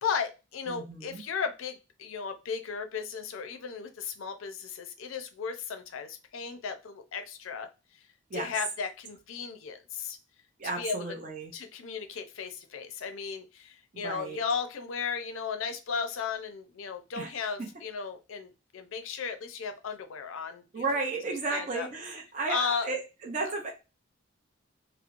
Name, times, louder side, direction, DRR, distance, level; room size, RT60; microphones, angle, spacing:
voice 1, 0.0-7.7 8.3-10.2 10.6-11.1 11.5-21.0 21.5-21.9 22.5-22.9 23.4-23.5, left 6 dB, 75° left, 7 dB, 0.4 m, -35 dB
voice 2, 0.7-1.2 8.3-8.5 10.6-11.5 14.0-14.4 17.2-17.3 17.6-17.7 20.7-23.7, right 3 dB, 35° right, 1 dB, 0.5 m, -33 dB
2.9 x 2.0 x 2.4 m, 0.28 s
head